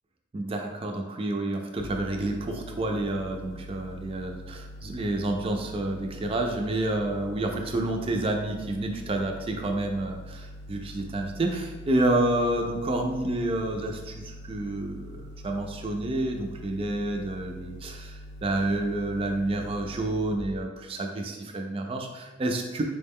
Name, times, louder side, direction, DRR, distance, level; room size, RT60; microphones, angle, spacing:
voice 1, 0.3-22.8, right 2 dB, 25° right, 3 dB, 0.3 m, -29 dB
sound 1, 1.8-20.4, equal, 70° left, 0.7 m, -43 dB
4.5 x 2.1 x 3.5 m, 1.2 s
head